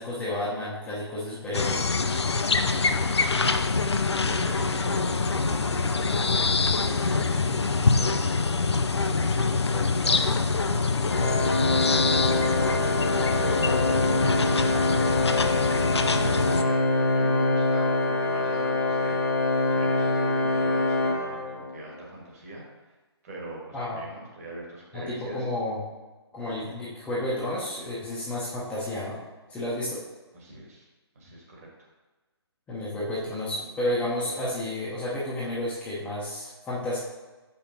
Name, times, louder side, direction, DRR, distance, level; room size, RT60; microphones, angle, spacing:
voice 1, 0.0-1.9 23.7-24.0 24.9-25.9 26.3-29.2 29.5-30.0 32.7-37.0, left 1 dB, 10° left, -8 dB, 0.8 m, -31 dB
sound 1, 1.5-16.6, left 4 dB, 75° left, 0.5 m, -25 dB
voice 2, 2.7-3.6 4.2-8.5 9.2-11.5 11.9-22.9 23.2-25.4 30.3-30.9 31.1-31.9, right 1 dB, 35° right, -2 dB, 1.6 m, -42 dB
Organ, 11.1-21.9, left 2 dB, 50° left, 1.0 m, -25 dB
6.6 x 5.5 x 2.8 m, 1.2 s
figure-of-eight pair, 140°, 14 cm